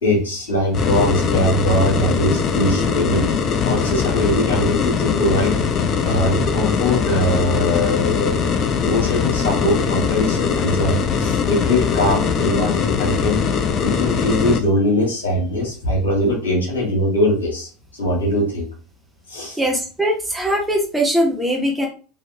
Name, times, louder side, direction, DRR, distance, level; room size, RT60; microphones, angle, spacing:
voice 1, 0.0-3.3 3.6-5.6 6.0-8.4 8.8-13.4 13.8-17.7 18.0-18.7 19.3-19.6, left 1 dB, 75° left, -4 dB, 2.1 m, -21 dB
sound 1, 0.7-14.6, left 6 dB, 40° left, 0.6 m, -21 dB
voice 2, 19.6-21.9, equal, 5° right, 0 dB, 1.0 m, -20 dB
4.1 x 3.1 x 3.3 m, 0.37 s
figure-of-eight pair, 75°, 0 cm